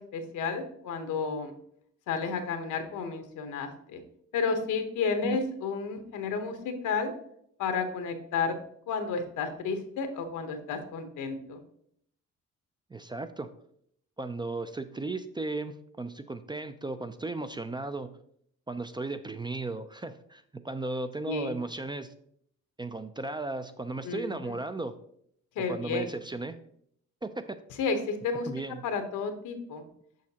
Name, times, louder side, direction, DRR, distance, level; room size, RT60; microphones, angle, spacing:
voice 1, 0.0-1.5 2.1-4.0 4.3-7.1 7.6-8.6 8.9-11.6 21.2-21.5 24.0-24.5 25.5-26.1 27.8-28.5 28.8-29.8, left 5 dB, 85° left, 7 dB, 1.0 m, -32 dB
voice 2, 12.9-13.5 14.2-18.1 18.7-22.1 22.8-24.9 25.7-26.6 27.2-27.6 28.5-28.8, right 2 dB, 15° right, 10 dB, 0.3 m, -35 dB
6.4 x 6.1 x 2.9 m, 0.69 s
cardioid pair, 90°, 30 cm